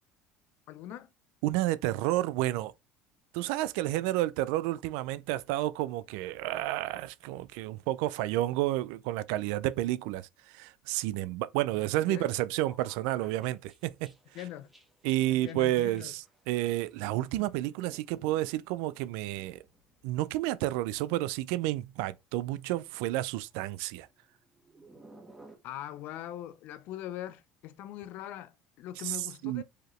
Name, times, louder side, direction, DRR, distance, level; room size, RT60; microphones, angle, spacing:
voice 1, 0.7-1.1 12.0-12.3 14.3-14.7 15.3-16.2 25.6-29.6, left 12 dB, 65° left, 0.5 m, -42 dB
voice 2, 1.4-2.7 3.3-14.1 15.0-19.6 20.0-24.1 29.0-29.6, right 15 dB, 80° right, 0.4 m, -31 dB
sound 1, 12.6-21.7 22.0-22.2 23.1-25.6, right 2 dB, 5° right, 1.3 m, -59 dB
4.8 x 2.9 x 3.1 m
supercardioid pair, 115°, 3 cm